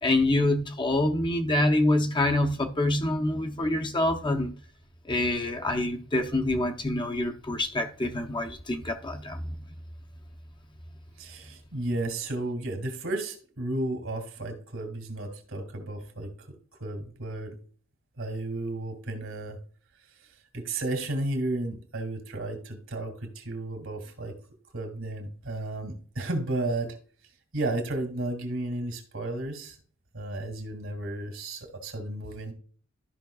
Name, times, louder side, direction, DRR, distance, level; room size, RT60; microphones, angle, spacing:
voice 1, 0.0-4.5 5.1-9.6, left 1 dB, 25° left, 0.7 m, -26 dB
voice 2, 11.2-16.3 16.8-17.5 18.2-19.6 20.5-24.3 24.7-26.9 27.5-29.8 30.1-32.5, right 2 dB, 70° right, 2.2 m, -33 dB
12.5 x 5.7 x 2.3 m
head